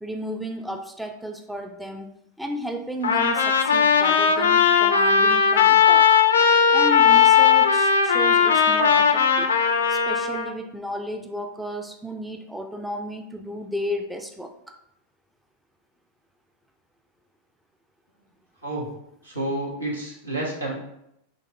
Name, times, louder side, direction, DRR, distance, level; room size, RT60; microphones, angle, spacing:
voice 1, 0.0-2.1 2.4-6.1 6.7-9.5 9.9-14.8, equal, 5° right, 4 dB, 0.4 m, -33 dB
Trumpet, 3.0-10.5, left 7 dB, 70° left, 0.5 m, -18 dB
voice 2, 19.2-20.7, right 1 dB, 80° right, -4 dB, 1.5 m, -29 dB
4.1 x 3.0 x 4.2 m, 0.78 s
figure-of-eight pair, 90°, 0 cm